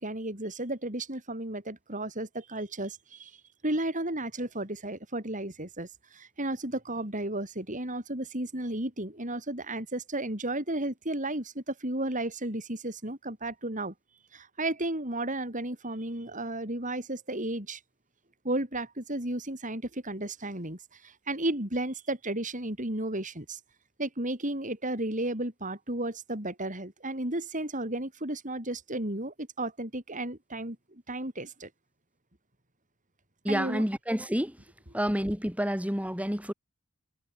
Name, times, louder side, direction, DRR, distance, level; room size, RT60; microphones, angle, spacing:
voice 1, 0.0-3.3 3.6-13.9 14.3-17.8 18.4-23.6 24.0-31.7 33.5-33.8, right 1 dB, 35° right, 6.7 m, -33 dB
voice 2, 33.4-34.5 34.9-36.5, equal, 5° right, 4.8 m, -29 dB
head